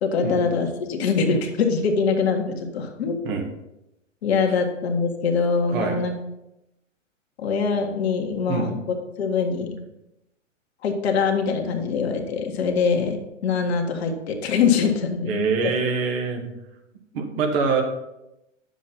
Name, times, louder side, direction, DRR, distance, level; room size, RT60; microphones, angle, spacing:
voice 1, 0.0-3.3 4.2-6.1 7.4-8.8 9.2-9.7 10.8-15.7, left 5 dB, 55° left, 3 dB, 1.6 m, -23 dB
voice 2, 15.3-16.4 17.1-17.8, right 5 dB, 45° right, 2 dB, 1.9 m, -24 dB
10.0 x 7.4 x 4.2 m, 0.89 s
figure-of-eight pair, 110°, 39 cm